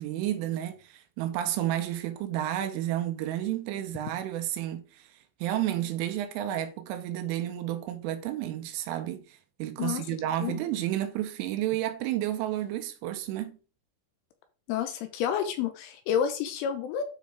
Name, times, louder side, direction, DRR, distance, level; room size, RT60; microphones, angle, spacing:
voice 1, 0.0-13.6, right 12 dB, 85° right, 3.1 m, -31 dB
voice 2, 14.7-17.0, left 8 dB, 80° left, 3.2 m, -29 dB
9.2 x 5.2 x 3.5 m
omnidirectional pair, 5.9 m